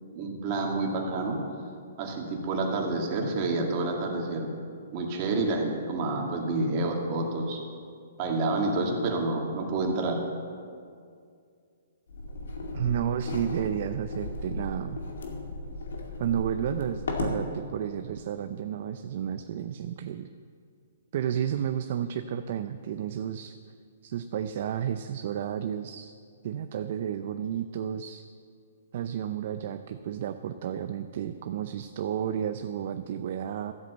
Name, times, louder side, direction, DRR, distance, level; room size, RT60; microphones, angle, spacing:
voice 1, 0.2-1.4 2.0-4.5 4.9-7.6 8.2-10.2, right 2 dB, 35° right, 0 dB, 2.1 m, -28 dB
sound 1, 12.1-17.4, left 2 dB, 85° left, 2.3 m, -35 dB
voice 2, 12.7-15.0 16.2-20.3 21.1-23.6 24.0-26.1 26.4-28.2 28.9-33.7, right 9 dB, 50° right, 9 dB, 0.5 m, -32 dB
13.5 x 7.9 x 7.9 m, 2.3 s
hypercardioid pair, 155°, 0 cm